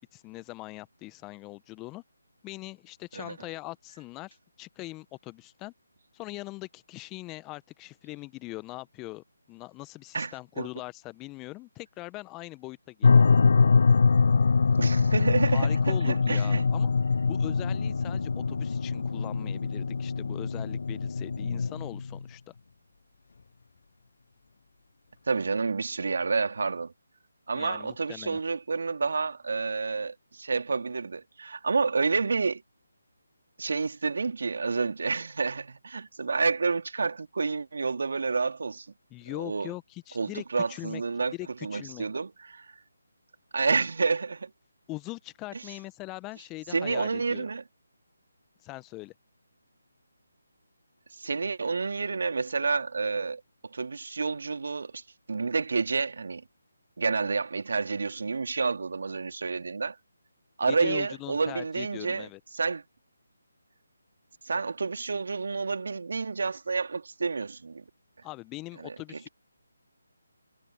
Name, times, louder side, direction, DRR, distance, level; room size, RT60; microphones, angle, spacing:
voice 1, 0.0-2.0 2.4-5.7 6.1-13.1 15.5-16.9 17.2-22.5 27.5-28.4 39.1-41.0 41.3-42.1 44.9-47.4 48.6-49.1 60.7-62.4 68.2-69.3, left 21 dB, 15° left, 1.1 m, -41 dB
voice 2, 10.1-10.7 14.8-16.6 25.3-26.9 27.5-32.6 33.6-38.9 39.3-39.7 40.1-41.3 41.6-42.6 43.5-44.5 45.5-45.6 46.7-47.6 51.1-55.0 55.3-56.4 57.0-60.0 60.6-62.3 62.5-62.8 64.4-67.8 68.8-69.3, right 4 dB, 60° right, 2.9 m, -29 dB
sound 1, 13.0-22.2, left 4 dB, 55° left, 1.0 m, -23 dB
figure-of-eight pair, 150°, 0 cm